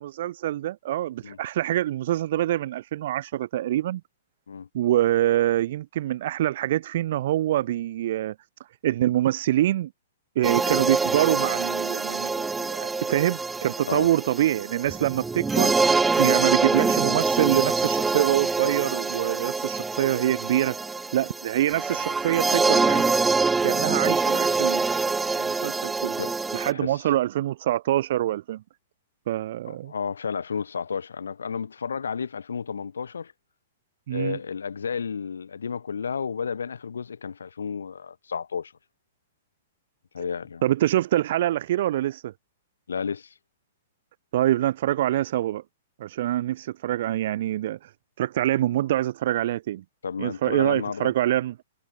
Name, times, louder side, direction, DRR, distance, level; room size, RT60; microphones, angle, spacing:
voice 1, 0.0-4.0 4.7-8.3 8.8-9.9 10.3-20.8 21.1-23.0 23.6-24.8 25.4-26.2 26.5-28.6 29.3-29.9 34.1-34.4 40.2-40.3 40.6-42.3 44.3-45.6 46.0-47.9 48.2-49.8 50.2-51.6, right 13 dB, 55° right, 1.4 m, -25 dB
sound 1, 10.4-26.7, right 4 dB, 10° right, 0.8 m, -25 dB
voice 2, 29.7-33.3 34.1-38.7 40.1-40.6 42.9-43.3 50.0-51.1, left 6 dB, 75° left, 1.8 m, -32 dB
figure-of-eight pair, 110°, 0 cm